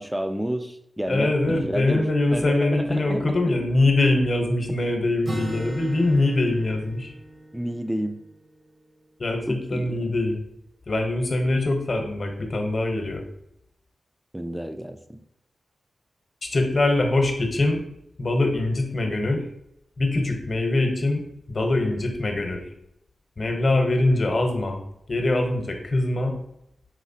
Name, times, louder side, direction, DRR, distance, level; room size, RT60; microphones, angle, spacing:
voice 1, 0.0-3.5 7.5-8.2 9.5-10.2 14.3-15.2, right 1 dB, 10° right, 8 dB, 0.4 m, -30 dB
voice 2, 1.1-7.1 9.2-10.4 10.9-13.2 16.4-17.8 18.2-19.5 20.0-21.2 21.5-22.6 23.4-24.8 25.1-26.4, left 2 dB, 50° left, 4 dB, 0.8 m, -23 dB
Acoustic guitar, 5.2-9.0, right 1 dB, 40° right, 0.9 m, -38 dB
4.9 x 3.1 x 2.7 m, 0.79 s
cardioid pair, 55°, 0 cm